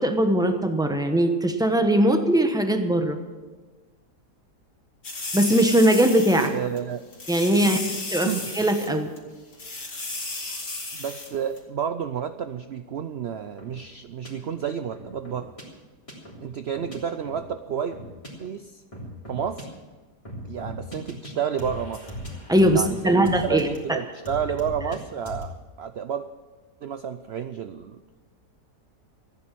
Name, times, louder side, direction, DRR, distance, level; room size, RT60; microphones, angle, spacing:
voice 1, 0.0-3.2 5.3-6.5 7.3-7.8 8.1-9.1 22.5-24.0, right 1 dB, 5° right, 6 dB, 0.8 m, -20 dB
sound 1, 5.0-6.5 6.8-6.9 7.1-8.9 9.2-9.3 9.5-11.3 11.6-11.7, left 2 dB, 45° left, 2.6 m, -34 dB
voice 2, 6.5-7.0 7.6-7.9 8.2-8.4 10.9-15.5 16.4-17.9 18.4-18.8 19.3-19.7 20.4-22.0 22.7-26.3 26.8-28.0, right 8 dB, 80° right, 10 dB, 0.5 m, -30 dB
sound 2, 13.6-13.7 14.2-14.3 14.9-15.6 16.1-16.4 16.7-17.0 17.3-17.4 17.9-18.3 18.9-19.6 20.2-21.3 21.6-23.8 24.2-25.0 25.2-25.5, equal, 20° left, 3.6 m, -38 dB
15.0 x 9.4 x 7.5 m, 1.3 s
omnidirectional pair, 1.8 m